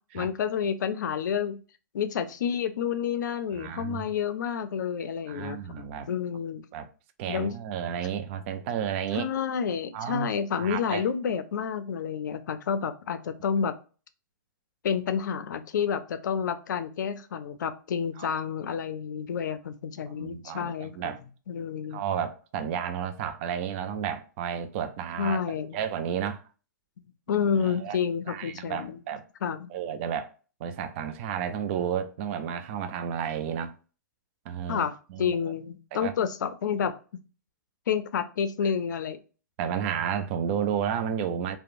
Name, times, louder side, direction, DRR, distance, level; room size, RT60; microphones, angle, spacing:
voice 1, 0.1-1.6 1.9-6.6 7.3-7.5 9.1-13.7 14.8-21.1 21.5-22.0 25.2-25.8 27.3-29.0 29.4-29.7 34.7-36.9 37.9-39.2, left 7 dB, 75° left, 0.4 m, -29 dB
voice 2, 3.5-4.1 5.3-6.1 6.7-6.9 7.2-9.3 9.9-10.3 10.6-11.0 18.2-18.3 20.2-21.2 21.9-26.4 27.7-28.0 28.3-29.2 29.7-30.3 30.6-33.7 34.5-34.9 35.1-35.4 35.9-36.1 39.6-41.6, right 8 dB, 40° right, 0.3 m, -32 dB
2.9 x 2.0 x 2.4 m
hypercardioid pair, 135°, 10 cm